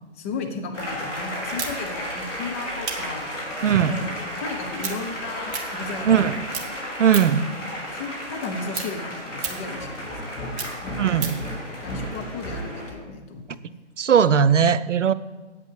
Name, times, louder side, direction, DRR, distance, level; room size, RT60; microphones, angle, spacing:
voice 1, 0.2-6.3 7.7-10.3 10.8-11.4 11.8-13.8, left 3 dB, 10° left, 3 dB, 0.5 m, -35 dB
sound 1, 0.7-12.9, equal, 85° left, 4.4 m, -33 dB
sound 2, 1.6-6.2 6.5-7.5 7.9-11.5, right 6 dB, 15° right, 0.9 m, -35 dB
voice 2, 3.6-3.9 6.0-6.4 7.0-7.5 11.0-11.4 14.0-15.1, right 8 dB, 80° right, 15 dB, 0.6 m, -19 dB
8.6 x 8.4 x 6.6 m, 1.2 s
figure-of-eight pair, 135°, 36 cm